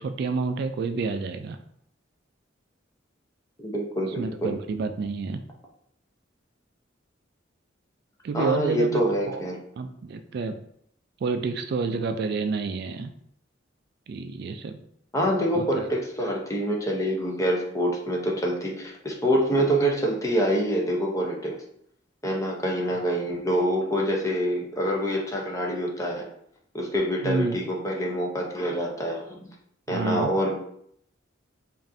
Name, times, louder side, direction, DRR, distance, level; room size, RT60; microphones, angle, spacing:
voice 1, 0.0-1.6 4.0-5.4 8.2-9.4 9.8-10.6 11.2-13.1 14.1-14.8 15.5-15.8 27.2-27.6 29.9-30.3, right 4 dB, 55° right, 8 dB, 0.3 m, -29 dB
voice 2, 3.6-4.6 8.3-9.6 15.1-21.5 22.2-26.3 26.7-29.5 29.9-30.6, equal, 15° left, -1 dB, 0.7 m, -26 dB
5.1 x 2.6 x 2.6 m, 0.69 s
head